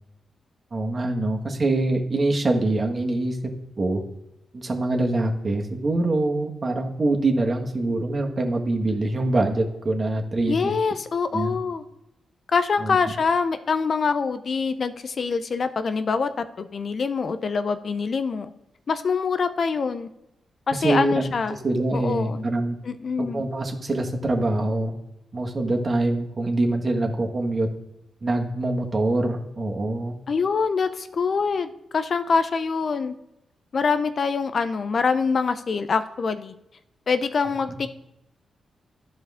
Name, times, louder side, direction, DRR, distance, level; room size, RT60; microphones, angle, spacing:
voice 1, 0.7-3.4 3.8-4.0 4.5-10.7 11.3-11.5 12.8-13.0 20.7-22.8 23.2-24.9 25.3-27.7 28.2-30.2, right 2 dB, 45° right, 1 dB, 1.7 m, -24 dB
voice 2, 10.5-11.8 12.5-16.3 16.6-18.5 18.9-20.1 20.7-21.6 21.9-22.5 22.8-23.4 30.3-33.1 33.7-36.5 37.1-37.9, left 5 dB, 55° left, 11 dB, 0.6 m, -24 dB
11.5 x 5.2 x 3.6 m, 0.87 s
supercardioid pair, 50°, 0 cm